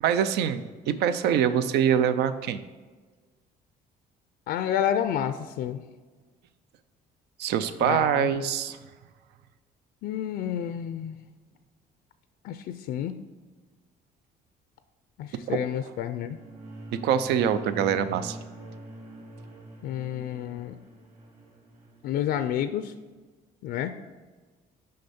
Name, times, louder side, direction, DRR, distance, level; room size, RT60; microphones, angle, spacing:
voice 1, 0.0-2.6 7.4-8.8 15.5-15.6 15.9-16.0 16.9-18.4, right 9 dB, 80° right, 12 dB, 0.5 m, -24 dB
voice 2, 4.5-5.8 7.8-8.3 10.0-11.2 12.4-13.2 15.2-16.4 19.8-20.8 22.0-22.9 23.6-24.0, left 10 dB, 70° left, 10 dB, 0.4 m, -29 dB
sound 1, 16.1-22.7, right 1 dB, 40° right, 2.1 m, -44 dB
6.5 x 5.4 x 4.3 m, 1.4 s
cardioid pair, 110°, 17 cm